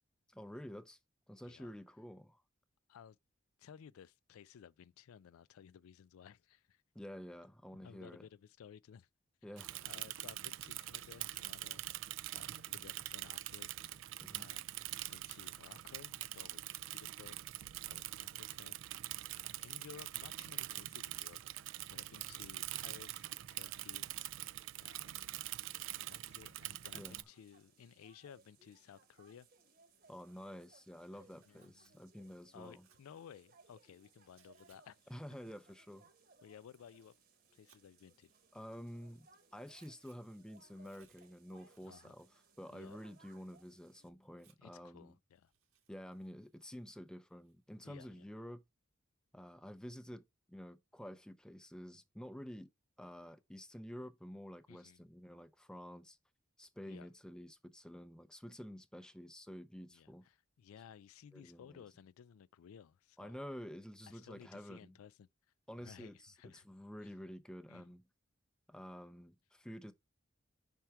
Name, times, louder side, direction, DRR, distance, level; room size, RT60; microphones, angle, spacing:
voice 1, 0.3-1.0 1.3-2.4 6.9-8.3 9.4-9.9 14.2-14.5 26.9-27.3 30.1-32.9 35.1-36.0 38.5-45.1 45.9-48.6 49.3-52.7 53.0-56.2 56.6-60.2 61.3-61.8 63.2-64.9 65.7-68.0 68.7-69.9, equal, 5° left, 0.4 m, -50 dB
voice 2, 3.6-6.8 7.7-9.1 9.8-11.9 12.3-14.0 14.3-14.7 15.1-16.6 16.9-17.4 17.8-19.1 19.4-24.1 24.7-25.5 25.8-29.5 31.1-32.0 32.5-35.1 36.4-37.1 37.5-38.3 41.8-42.1 42.7-43.0 44.6-45.5 47.8-48.3 54.7-55.0 56.9-57.1 59.9-63.4 64.1-65.3 65.8-66.6 67.0-67.1 67.7-67.9, left 8 dB, 90° left, 0.3 m, -57 dB
Bicycle / Mechanisms, 9.6-27.2, right 15 dB, 65° right, 0.3 m, -44 dB
sound 1, 27.1-44.1, right 3 dB, 45° right, 1.1 m, -67 dB
Tearing, 31.2-34.8 35.1-39.0 39.3-44.9 45.3-47.9, right 8 dB, 85° right, 1.5 m, -74 dB
5.7 x 4.5 x 4.6 m
head